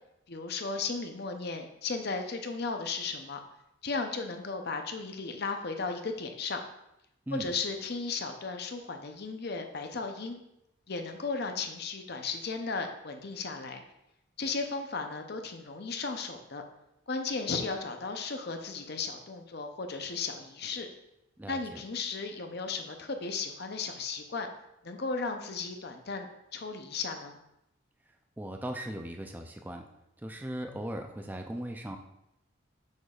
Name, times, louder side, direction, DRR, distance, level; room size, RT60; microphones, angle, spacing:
voice 1, 0.3-3.4 3.8-6.6 7.3-10.4 10.9-13.8 14.4-16.6 17.1-20.9 21.5-24.5 24.8-27.4, left 4 dB, 50° left, 5 dB, 0.6 m, -35 dB
voice 2, 21.4-21.8 28.4-29.9 30.2-32.0, right 1 dB, 10° right, 4 dB, 0.4 m, -38 dB
6.5 x 6.3 x 2.4 m, 0.84 s
head